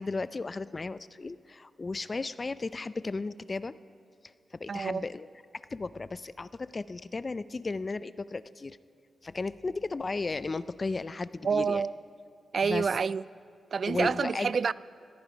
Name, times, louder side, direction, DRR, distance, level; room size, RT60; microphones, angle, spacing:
voice 1, 0.0-3.7 4.5-5.3 5.7-8.8 9.2-11.8 12.6-12.9 13.9-14.5, left 3 dB, 30° left, 15 dB, 0.4 m, -34 dB
voice 2, 4.7-5.0 11.4-11.9 12.5-13.2 13.7-14.7, right 5 dB, 55° right, 19 dB, 0.3 m, -28 dB
19.5 x 13.5 x 5.1 m, 2.3 s
wide cardioid pair, 105°, 0 cm